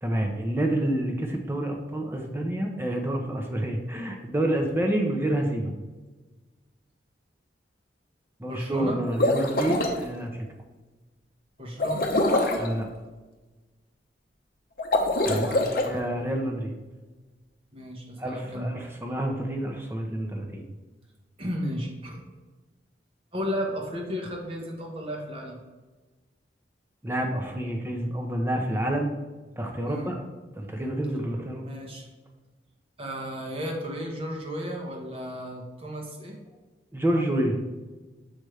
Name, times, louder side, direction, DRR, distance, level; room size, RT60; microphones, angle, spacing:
voice 1, 0.0-5.7 8.4-10.4 12.6-12.9 15.3-15.6 15.8-16.8 18.2-20.6 27.0-29.1 29.6-30.2 30.6-31.7 36.9-37.6, right 1 dB, 15° right, 2 dB, 0.8 m, -28 dB
voice 2, 8.5-9.0 11.6-12.1 15.2-16.0 17.7-18.7 21.4-22.2 23.3-25.6 29.9-30.1 31.6-32.1 33.0-36.4, equal, 30° right, 0 dB, 1.1 m, -34 dB
sound 1, 9.0-10.0 11.8-12.7 14.8-15.9, left 1 dB, 50° left, 0.7 m, -24 dB
6.4 x 5.2 x 3.2 m, 1.2 s
head